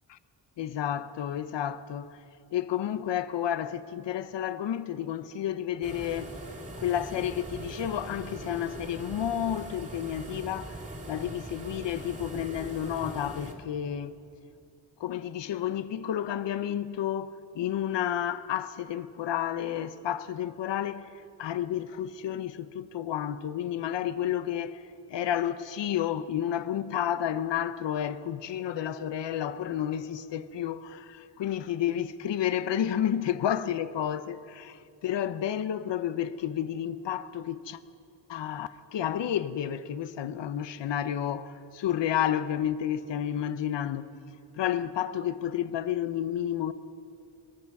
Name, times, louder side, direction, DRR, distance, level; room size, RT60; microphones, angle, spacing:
voice 1, 0.6-2.2 2.5-6.3 6.8-10.8 11.1-14.2 15.0-21.1 21.4-24.8 25.1-37.8 38.3-44.1 44.5-46.7, left 10 dB, 70° left, 0.7 m, -31 dB
sound 1, 5.8-13.5, right 1 dB, 15° right, 2.7 m, -41 dB
23.0 x 21.5 x 5.9 m
wide cardioid pair, 165°, 45 cm